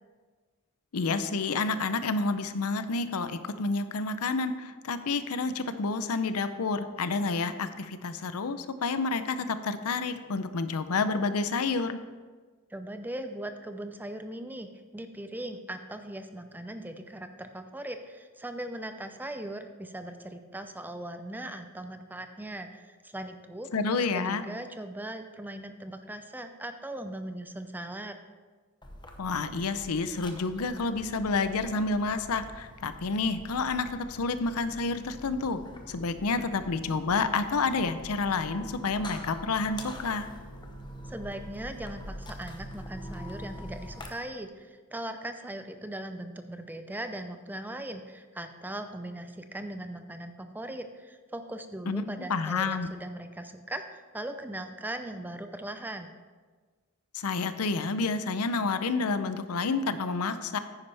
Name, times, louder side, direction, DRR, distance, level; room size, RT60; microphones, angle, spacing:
voice 1, 0.9-12.0 23.7-24.4 29.2-35.6 35.9-40.3 51.9-52.0 52.3-52.9 57.1-60.6, left 4 dB, 90° left, 11 dB, 0.6 m, -29 dB
voice 2, 12.7-23.7 24.1-28.2 41.1-56.1, right 1 dB, 10° right, 8 dB, 0.5 m, -39 dB
sound 1, 28.8-44.1, equal, 20° left, 0.9 m, -45 dB
9.8 x 9.6 x 3.4 m, 1.4 s
head